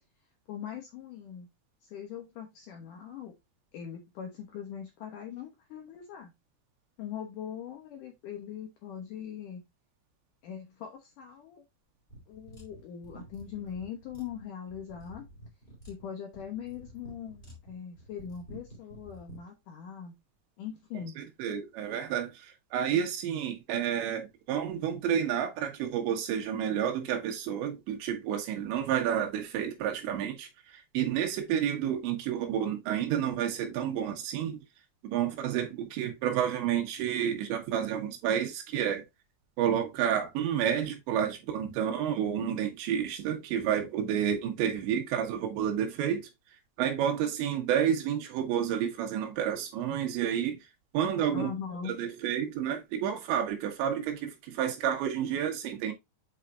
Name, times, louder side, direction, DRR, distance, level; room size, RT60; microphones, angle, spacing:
voice 1, 0.5-1.5 1.8-3.4 3.7-6.3 7.0-9.6 10.4-11.6 12.3-15.3 15.9-20.1 20.6-21.2 51.3-52.0, left 8 dB, 75° left, 1.9 m, -41 dB
sound 1, 12.1-19.4, equal, 15° left, 2.3 m, -50 dB
voice 2, 21.2-34.6 35.1-39.1 39.6-46.3 46.8-50.6 50.9-51.5 51.8-55.9, right 9 dB, 80° right, 3.6 m, -30 dB
8.1 x 5.0 x 2.5 m
omnidirectional pair, 5.1 m